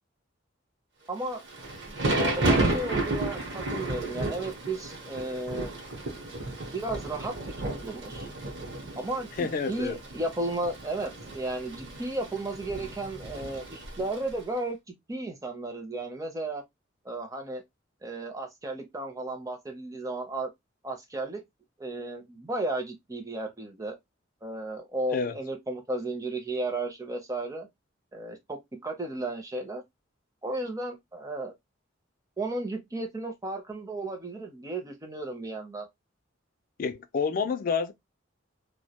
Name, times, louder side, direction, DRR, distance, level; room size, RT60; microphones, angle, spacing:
voice 1, 1.1-1.4 2.1-5.7 6.7-8.3 9.0-16.6 17.0-17.6 18.0-20.5 20.8-21.4 21.8-24.0 24.4-27.7 28.1-29.8 30.4-31.5 32.4-35.9, right 2 dB, 15° right, 0.5 m, -34 dB
Thunder / Rain, 1.3-14.3, right 2 dB, 60° right, 0.8 m, -32 dB
voice 2, 9.4-10.0 25.1-25.4 36.8-37.9, left 5 dB, 45° left, 0.3 m, -28 dB
2.1 x 2.1 x 2.7 m
head